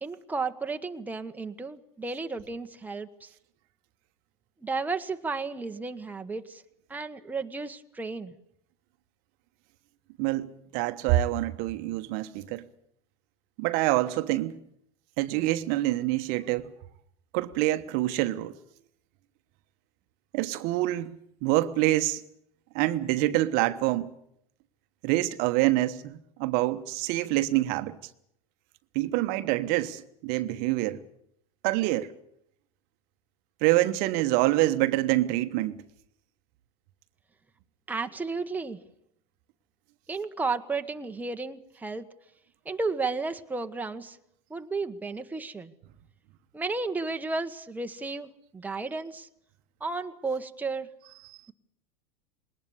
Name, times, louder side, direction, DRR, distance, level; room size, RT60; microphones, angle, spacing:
voice 1, 0.0-3.3 4.6-6.6 6.9-8.3 37.9-38.8 40.1-42.0 42.6-44.2 44.5-45.7 46.5-49.3 49.8-50.9, right 4 dB, 10° right, 1.3 m, -33 dB
voice 2, 10.2-12.7 13.6-14.6 15.2-16.7 17.3-18.5 20.3-22.2 22.7-24.1 25.0-28.0 28.9-31.0 31.6-32.1 33.6-35.8, right 16 dB, 55° right, 1.2 m, -26 dB
21.0 x 19.0 x 8.3 m
hypercardioid pair, 95°, 19 cm